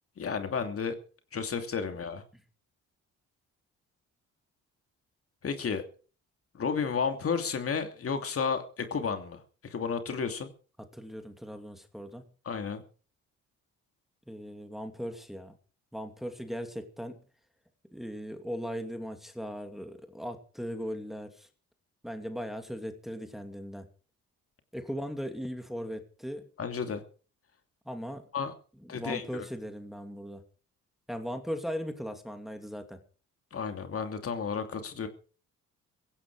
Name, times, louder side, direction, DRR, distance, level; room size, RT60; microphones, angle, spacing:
voice 1, 0.2-1.0 1.3-2.2 5.4-5.8 6.5-9.4 9.7-10.5 12.5-12.8 26.6-27.0 28.3-28.5 28.9-29.4 33.5-35.1, left 6 dB, 50° left, 7 dB, 2.7 m, -32 dB
voice 2, 10.8-12.3 14.3-15.5 15.9-17.2 17.9-21.5 22.0-23.9 24.7-26.5 27.9-28.3 28.8-30.4 31.1-33.0, equal, ahead, 6 dB, 2.6 m, -38 dB
16.5 x 16.0 x 4.9 m, 0.39 s
cardioid pair, 90°, 30 cm